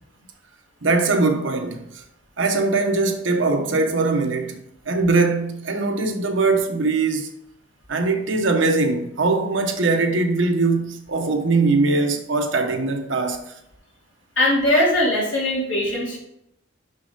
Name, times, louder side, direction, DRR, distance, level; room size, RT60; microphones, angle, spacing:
voice 1, 0.8-1.8 2.4-7.3 7.9-13.4, right 3 dB, 75° right, 1.0 m, -21 dB
voice 2, 14.4-16.2, left 1 dB, 70° left, 2.7 m, -20 dB
6.2 x 5.7 x 3.8 m
head